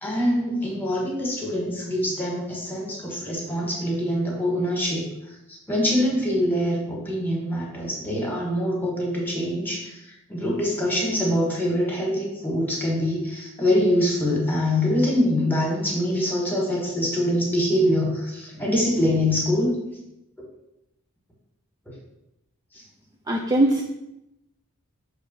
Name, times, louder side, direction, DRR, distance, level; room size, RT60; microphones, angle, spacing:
voice 1, 0.0-19.7 21.9-22.0 22.7-22.8, left 1 dB, 10° left, -2 dB, 1.6 m, -24 dB
voice 2, 23.3-23.8, right 1 dB, 20° right, -1 dB, 0.5 m, -20 dB
6.4 x 3.3 x 5.4 m, 0.88 s
head